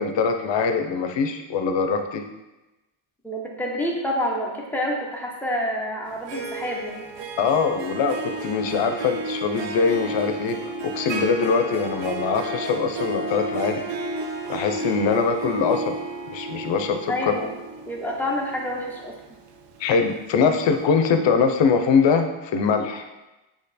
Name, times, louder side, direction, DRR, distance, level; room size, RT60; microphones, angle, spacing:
voice 1, 0.0-2.2 7.4-13.8 14.5-16.0 16.3-17.3 19.8-23.1, left 5 dB, 70° left, 7 dB, 0.6 m, -22 dB
voice 2, 3.2-7.1 17.1-17.5 17.9-19.1, left 1 dB, 5° left, -3 dB, 0.7 m, -28 dB
Harp, 6.1-20.0, right 2 dB, 65° right, 0.6 m, -32 dB
4.3 x 2.9 x 4.0 m, 1.0 s
wide cardioid pair, 165°, 46 cm